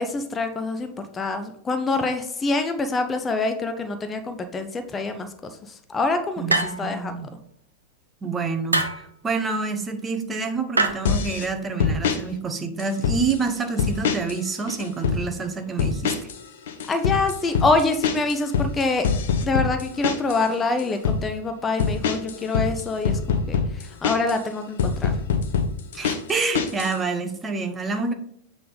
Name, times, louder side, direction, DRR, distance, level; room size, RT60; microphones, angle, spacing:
voice 1, 0.0-5.5 5.9-6.4 6.8-7.1 16.9-19.1 19.4-23.6 24.0-25.1, left 3 dB, 20° left, 8 dB, 0.6 m, -25 dB
voice 2, 6.4-7.3 8.2-16.3 25.9-28.1, right 4 dB, 20° right, 7 dB, 0.7 m, -27 dB
sound 1, 6.5-7.0 8.7-9.1 10.7-10.9, right 2 dB, 80° right, 0.6 m, -23 dB
sound 2, 11.0-11.5 11.8-12.2 12.8-13.4 13.8-14.4 14.7-15.2 15.8-16.4 16.7-20.4 20.8-21.2 21.8-24.4 24.8-26.9, left 6 dB, 60° left, 0.7 m, -24 dB
7.6 x 3.4 x 3.9 m, 0.70 s
figure-of-eight pair, 90°, 0 cm